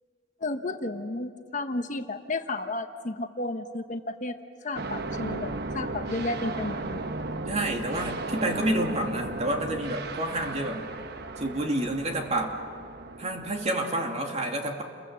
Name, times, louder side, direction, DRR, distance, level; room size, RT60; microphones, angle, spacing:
voice 1, 0.4-4.4 4.6-7.0, left 2 dB, 40° left, 7 dB, 1.1 m, -32 dB
sound 1, 4.7-13.8, right 2 dB, 60° right, 1.0 m, -35 dB
voice 2, 7.5-10.9 11.4-12.6 13.2-14.8, right 1 dB, 35° right, 2 dB, 2.7 m, -29 dB
29.5 x 22.5 x 7.6 m, 2.3 s
head